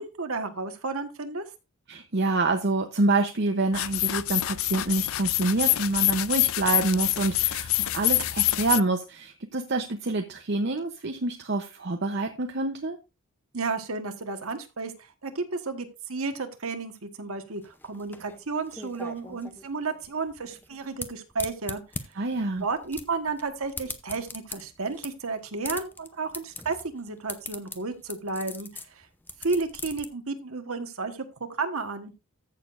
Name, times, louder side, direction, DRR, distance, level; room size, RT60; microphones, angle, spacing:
voice 1, 0.0-1.4 13.5-14.9 15.2-21.8 22.6-28.8 29.4-32.1, right 4 dB, 80° right, 7 dB, 1.4 m, -32 dB
voice 2, 1.9-13.0 22.2-22.6, right 2 dB, 55° right, 5 dB, 0.8 m, -27 dB
sound 1, 3.7-8.8, left 17 dB, 70° left, 0.4 m, -26 dB
sound 2, 17.6-30.1, left 3 dB, 10° left, 0.6 m, -40 dB
14.5 x 6.7 x 2.5 m, 0.27 s
head